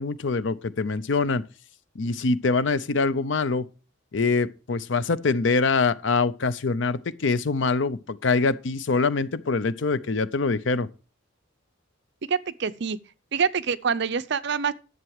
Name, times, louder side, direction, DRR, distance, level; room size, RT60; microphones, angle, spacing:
voice 1, 0.0-1.4 2.0-3.6 4.1-10.9, left 4 dB, 65° left, 0.6 m, -24 dB
voice 2, 12.3-13.0 13.3-14.7, right 6 dB, 60° right, 0.6 m, -26 dB
11.0 x 7.5 x 4.8 m
head